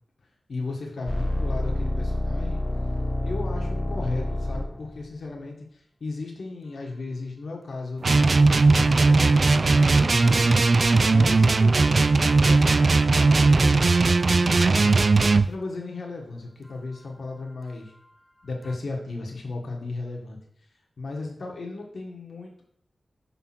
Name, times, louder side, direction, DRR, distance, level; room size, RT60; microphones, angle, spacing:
voice 1, 0.5-2.6 3.2-15.0 15.5-17.9 18.4-20.4 21.0-22.6, left 3 dB, 75° left, 0 dB, 1.3 m, -35 dB
sound 1, 1.1-5.1 10.7-12.1 12.4-12.6 18.6-18.7, left 1 dB, 25° left, 0.5 m, -29 dB
sound 2, 8.0-15.5, right 3 dB, 55° right, 0.3 m, -18 dB
5.8 x 3.6 x 5.9 m, 0.67 s
cardioid pair, 60°, 0 cm